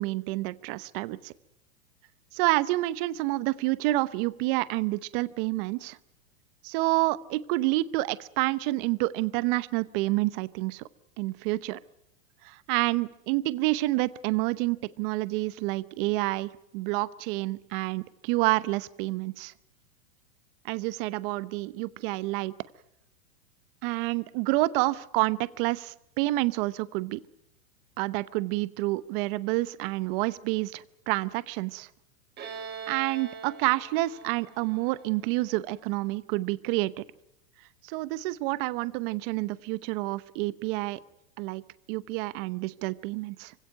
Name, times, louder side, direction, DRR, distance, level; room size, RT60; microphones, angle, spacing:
voice 1, 0.0-1.3 2.3-6.0 6.6-10.9 11.2-11.8 12.4-19.5 20.6-22.5 23.8-27.2 28.0-31.9 32.9-37.0 37.8-41.0 41.4-41.6 41.9-43.5, right 19 dB, 40° right, 17 dB, 0.9 m, -28 dB
Bowed string instrument, 32.4-35.9, right 6 dB, 25° right, 4.4 m, -43 dB
25.5 x 17.0 x 9.4 m, 0.84 s
hypercardioid pair, 140°, 40 cm